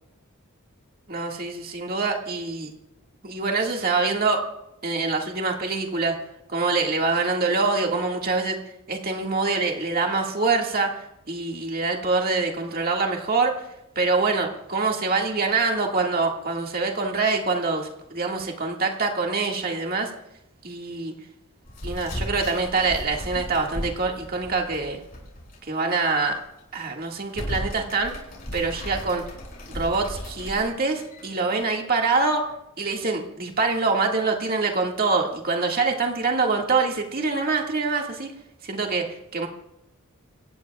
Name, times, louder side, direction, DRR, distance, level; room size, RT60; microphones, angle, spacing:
voice 1, 1.1-2.7 3.2-4.4 4.8-6.1 6.5-8.6 8.9-13.6 14.0-20.1 20.6-21.1 21.8-25.0 25.7-26.4 26.7-28.1 28.5-29.2 29.7-32.4 32.8-38.3 38.6-39.5, right 3 dB, 40° right, 1 dB, 1.9 m, -25 dB
sound 1, 21.7-25.6 25.9-26.0 26.6-26.8 27.2-31.6, equal, 40° left, 6.6 m, -36 dB
26.5 x 15.0 x 2.4 m, 0.85 s
head